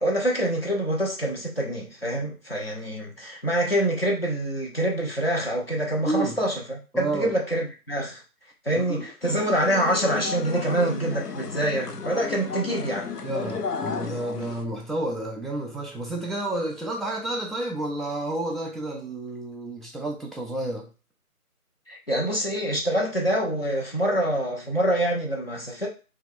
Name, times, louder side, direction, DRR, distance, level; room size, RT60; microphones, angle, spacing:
voice 1, 0.0-8.2 8.6-13.1 21.9-25.9, right 1 dB, 40° left, 0.8 m, -26 dB
voice 2, 6.0-6.4 6.9-7.3 8.7-9.1 13.2-20.9, right 2 dB, ahead, 0.4 m, -30 dB
sound 1, 9.2-14.6, left 5 dB, 85° left, 0.6 m, -33 dB
3.1 x 2.3 x 3.5 m
figure-of-eight pair, 170°, 46 cm